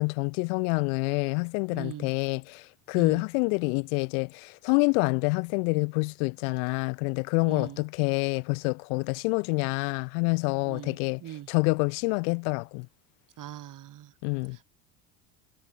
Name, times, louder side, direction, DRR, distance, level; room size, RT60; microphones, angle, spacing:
voice 1, 0.0-11.2 11.5-12.9 14.2-14.6, left 39 dB, 70° left, 0.7 m, -27 dB
voice 2, 1.7-2.1 2.9-3.2 7.4-7.8 10.7-11.5 13.4-14.1 14.4-14.6, right 12 dB, 45° right, 2.4 m, -41 dB
hypercardioid pair, 85°, 44 cm